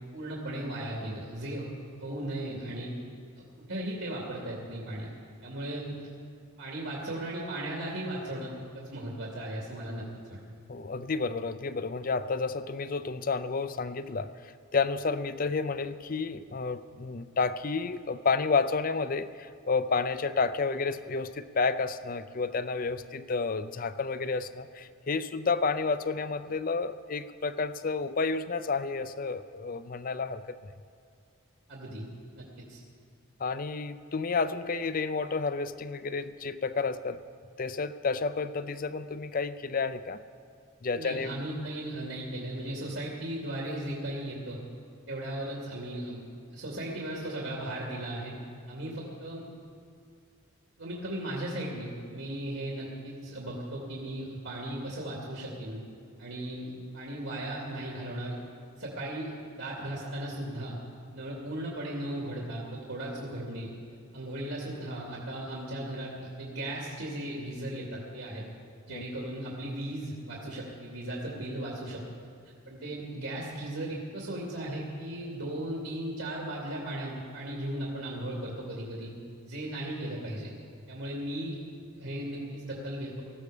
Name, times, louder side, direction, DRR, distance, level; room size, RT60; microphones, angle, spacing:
voice 1, 0.1-1.7 2.0-2.9 3.4-5.1 5.4-6.0 6.6-10.0 10.3-10.4 31.7-32.0 32.3-32.8 40.9-44.6 45.1-46.2 46.5-48.3 48.7-49.4 50.8-55.8 56.2-58.4 58.8-60.8 61.1-63.7 64.1-68.4 68.9-72.0 72.7-79.1 79.4-80.5 80.9-81.6 81.9-83.2, right 1 dB, 75° right, -3 dB, 2.6 m, -36 dB
voice 2, 10.7-30.6 33.4-37.2 37.6-40.2 40.8-41.3 68.9-69.0, left 4 dB, 40° left, 13 dB, 0.5 m, -30 dB
19.0 x 14.0 x 5.1 m, 2.3 s
head